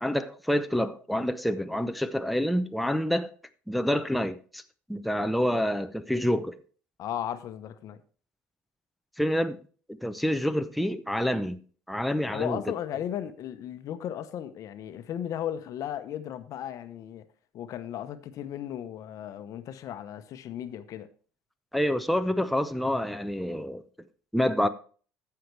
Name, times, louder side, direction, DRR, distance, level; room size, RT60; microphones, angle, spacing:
voice 1, 0.0-3.3 3.7-4.6 4.9-6.6 9.2-9.6 10.0-11.6 11.9-12.6 21.7-23.8 24.3-24.7, equal, ahead, 0.6 m, -27 dB
voice 2, 7.0-8.0 12.3-17.3 17.5-21.1, left 10 dB, 55° left, 0.9 m, -35 dB
14.5 x 5.8 x 3.3 m
supercardioid pair, 90°, 7 cm